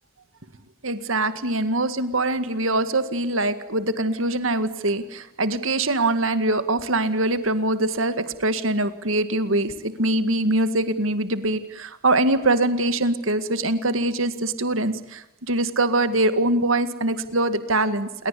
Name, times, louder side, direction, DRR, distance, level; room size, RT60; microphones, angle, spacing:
voice 1, 0.8-18.3, right 2 dB, 70° right, 11 dB, 2.0 m, -23 dB
29.0 x 22.0 x 8.5 m, 0.84 s
head